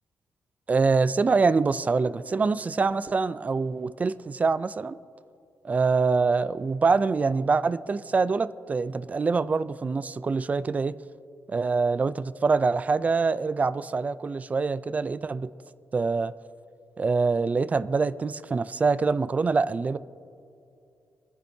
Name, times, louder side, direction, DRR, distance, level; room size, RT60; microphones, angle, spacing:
voice 1, 0.7-5.0 5.6-11.0 11.5-15.5 15.9-16.3 17.0-20.0, right 4 dB, 30° right, 14 dB, 0.4 m, -25 dB
30.0 x 10.5 x 2.7 m, 2.5 s
wide cardioid pair, 135°, 5 cm